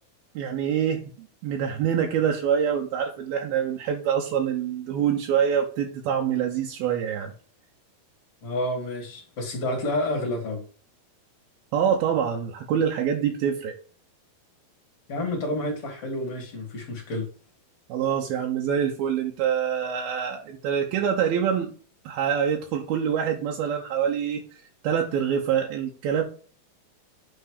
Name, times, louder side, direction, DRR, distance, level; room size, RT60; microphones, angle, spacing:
voice 1, 0.4-1.0 1.4-7.3 11.7-13.7 17.9-21.7 22.1-24.4 24.8-26.2, right 8 dB, 75° right, 2.8 m, -25 dB
voice 2, 8.4-10.6 15.1-17.3, left 1 dB, 40° left, 3.3 m, -29 dB
9.3 x 4.0 x 4.8 m
omnidirectional pair, 4.5 m